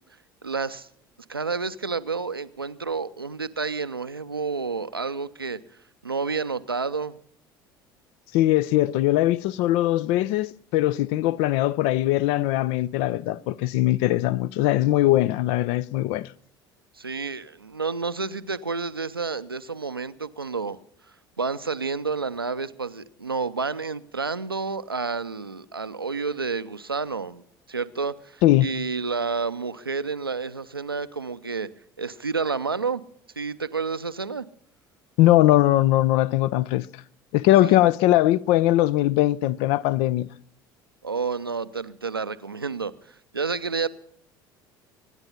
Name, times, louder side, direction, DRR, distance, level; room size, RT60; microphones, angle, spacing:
voice 1, 0.4-0.9 1.3-5.6 6.0-7.2 17.0-20.8 21.4-27.4 27.7-31.7 32.0-33.0 33.4-34.5 37.6-37.7 41.0-43.9, right 4 dB, 90° right, 0.5 m, -30 dB
voice 2, 8.3-16.3 28.4-28.7 35.2-36.9 37.3-40.3, left 15 dB, 55° left, 0.6 m, -21 dB
24.5 x 9.7 x 5.6 m
figure-of-eight pair, 65°, 12 cm